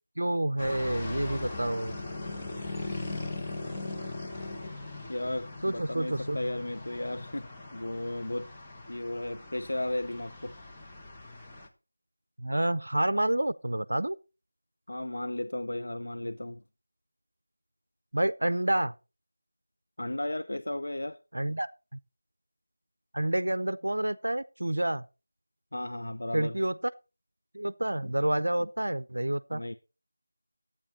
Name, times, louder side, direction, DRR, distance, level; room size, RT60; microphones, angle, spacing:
voice 1, 0.2-2.0 5.6-6.4 12.4-14.2 18.1-18.9 21.3-21.7 23.1-25.1 26.3-26.7 27.5-29.6, right 1 dB, 65° right, 0.5 m, -28 dB
sound 1, 0.6-11.7, left 2 dB, 10° left, 1.2 m, -40 dB
voice 2, 5.1-8.5 8.9-10.5 14.9-16.6 20.0-21.2 25.7-26.5 28.0-28.1 28.6-28.7 29.5-29.8, left 1 dB, 60° left, 0.6 m, -35 dB
12.0 x 8.8 x 4.1 m
figure-of-eight pair, 170°, 0 cm